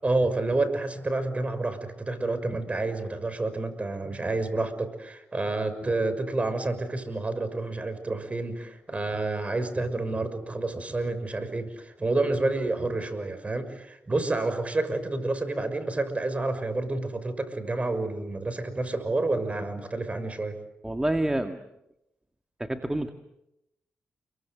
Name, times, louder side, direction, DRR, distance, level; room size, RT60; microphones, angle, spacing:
voice 1, 0.0-20.6, right 2 dB, 30° right, 10 dB, 6.0 m, -29 dB
voice 2, 20.8-21.6 22.6-23.1, right 1 dB, 10° right, 6 dB, 2.0 m, -27 dB
30.0 x 23.5 x 8.0 m, 0.86 s
cardioid pair, 60°, 4 cm